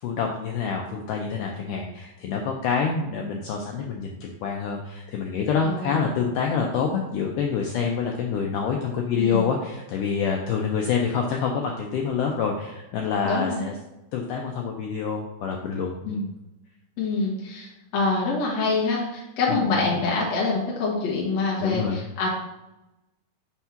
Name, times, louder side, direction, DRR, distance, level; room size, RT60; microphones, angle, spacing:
voice 1, 0.0-13.7 14.1-16.2 19.5-19.9 21.6-22.0, left 6 dB, 90° left, 1 dB, 1.8 m, -27 dB
voice 2, 5.6-6.1 9.1-9.5 13.2-13.6 16.0-16.3 17.0-22.3, left 3 dB, 60° left, -5 dB, 1.9 m, -26 dB
5.9 x 3.5 x 5.6 m, 0.95 s
omnidirectional pair, 4.4 m